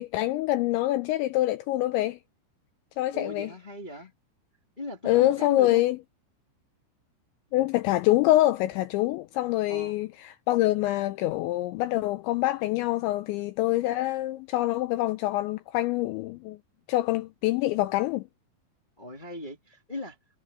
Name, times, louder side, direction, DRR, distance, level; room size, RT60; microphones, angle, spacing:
voice 1, 0.0-2.2 3.0-3.5 5.1-6.0 7.5-16.6 16.9-18.2, left 16 dB, 85° left, 2.6 m, -25 dB
voice 2, 3.1-4.1 4.8-5.8 9.7-10.0 19.0-20.2, left 1 dB, 30° left, 0.9 m, -38 dB
omnidirectional pair, 5.9 m